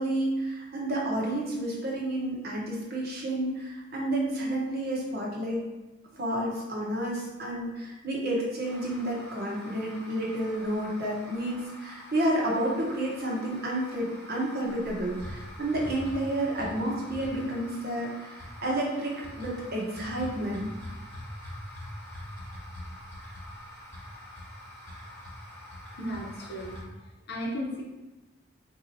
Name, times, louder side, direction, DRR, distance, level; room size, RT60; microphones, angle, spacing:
voice 1, 0.0-5.6 6.1-20.7, right 1 dB, 55° right, -3 dB, 0.9 m, -30 dB
sound 1, 8.6-26.8, left 1 dB, 15° left, 1.2 m, -44 dB
voice 2, 25.9-27.8, equal, 60° left, -3 dB, 0.7 m, -36 dB
4.0 x 2.7 x 2.7 m, 1.1 s
head